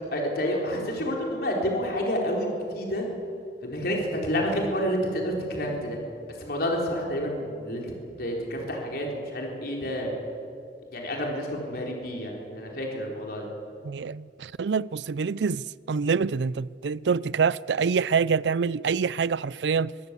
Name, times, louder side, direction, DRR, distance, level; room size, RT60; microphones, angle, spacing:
voice 1, 0.1-3.1 3.6-6.0 6.4-7.9 8.2-10.1 10.9-13.5, equal, 60° left, 4.3 m, -29 dB
voice 2, 13.8-19.9, right 5 dB, 80° right, 0.4 m, -26 dB
23.5 x 15.0 x 8.4 m
head